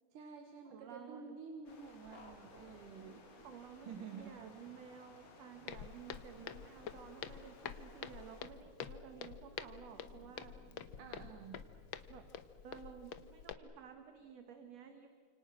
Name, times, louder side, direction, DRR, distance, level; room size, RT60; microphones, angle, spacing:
voice 1, 0.1-3.3 3.9-4.4 11.0-11.7, right 6 dB, 85° right, 5 dB, 3.1 m, -50 dB
voice 2, 0.6-1.8 3.4-10.5 12.1-12.2 12.6-15.1, right 7 dB, 60° right, 6 dB, 2.4 m, -54 dB
sound 1, 1.6-8.4, left 3 dB, 55° left, 4.0 m, -60 dB
sound 2, 2.1-12.3, left 2 dB, 30° left, 3.0 m, -63 dB
Walk footsteps, 5.7-13.5, left 8 dB, 80° left, 1.1 m, -48 dB
29.5 x 27.5 x 6.3 m, 2.1 s
omnidirectional pair, 3.6 m